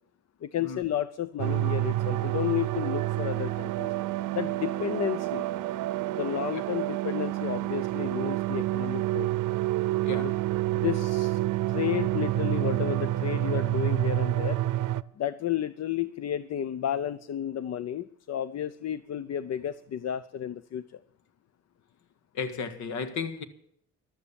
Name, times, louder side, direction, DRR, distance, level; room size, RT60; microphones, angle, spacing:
voice 1, 0.4-3.9 4.3-5.5 6.1-9.3 10.2-10.3 10.7-11.4 11.7-14.6 15.2-21.0, left 10 dB, 60° left, 0.7 m, -32 dB
sound 1, 1.4-15.0, right 15 dB, 85° right, 0.6 m, -28 dB
voice 2, 22.3-23.4, left 5 dB, 75° left, 1.8 m, -34 dB
14.5 x 12.0 x 7.0 m
cardioid pair, 90°, 30 cm